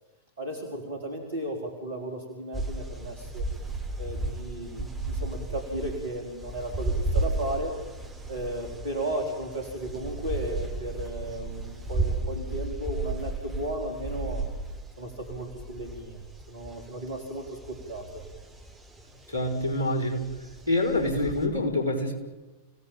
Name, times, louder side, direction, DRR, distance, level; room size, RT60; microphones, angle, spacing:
voice 1, 0.4-3.5 4.0-7.7 8.3-14.4 15.0-16.2 16.5-18.3, right 1 dB, 70° right, 2 dB, 3.9 m, -35 dB
sound 1, 2.5-21.5, right 2 dB, 15° right, 5.6 m, -34 dB
voice 2, 19.3-20.3 20.7-22.1, left 1 dB, 85° right, 3 dB, 5.4 m, -26 dB
29.5 x 17.5 x 9.1 m, 1.1 s
figure-of-eight pair, 90°, 0 cm